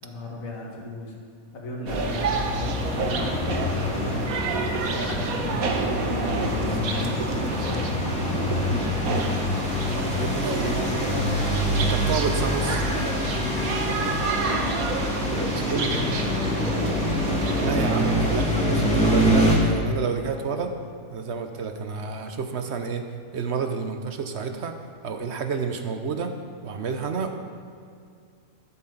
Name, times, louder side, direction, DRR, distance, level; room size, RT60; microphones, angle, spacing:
voice 1, 0.0-1.2 1.5-7.2 7.6-9.6 10.6-11.6 13.5-13.9 15.0-16.5, left 1 dB, 70° left, -2 dB, 2.2 m, -36 dB
sound 1, 1.9-19.6, left 1 dB, 5° left, 2.0 m, -26 dB
sound 2, 1.9-18.4, right 4 dB, 80° right, 1.4 m, -30 dB
voice 2, 10.1-11.4 11.8-12.9 15.6-15.9 17.6-20.7 21.1-24.8 25.0-26.3 26.6-27.4, right 5 dB, 55° right, 6 dB, 1.0 m, -30 dB
12.5 x 11.0 x 3.9 m, 2.3 s
omnidirectional pair, 1.5 m